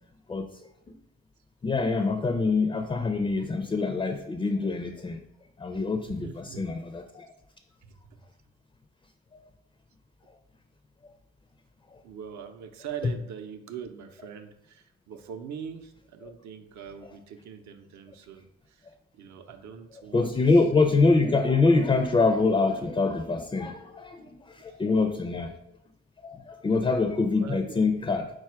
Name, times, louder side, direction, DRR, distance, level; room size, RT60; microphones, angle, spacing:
voice 1, 1.6-5.2 5.6-7.3 13.0-13.1 16.2-16.3 17.0-17.1 20.1-25.5 26.2-28.3, left 3 dB, 15° left, 6 dB, 0.4 m, -25 dB
voice 2, 6.1-6.6 7.8-8.2 12.0-18.5 18.8-18.9 19.1-20.4 27.3-27.7, right 7 dB, 65° right, 6 dB, 0.6 m, -42 dB
4.1 x 2.3 x 4.5 m, 0.80 s
supercardioid pair, 55°, 31 cm